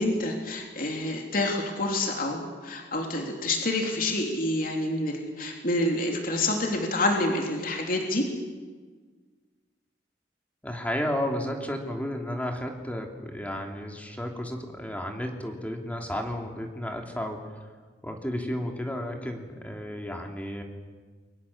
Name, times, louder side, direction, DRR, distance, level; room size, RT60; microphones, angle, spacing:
voice 1, 0.0-8.3, left 2 dB, 50° left, 1 dB, 3.4 m, -28 dB
voice 2, 10.6-17.4 18.0-20.6, equal, 10° left, 2 dB, 3.1 m, -32 dB
29.5 x 24.0 x 7.3 m, 1.5 s
head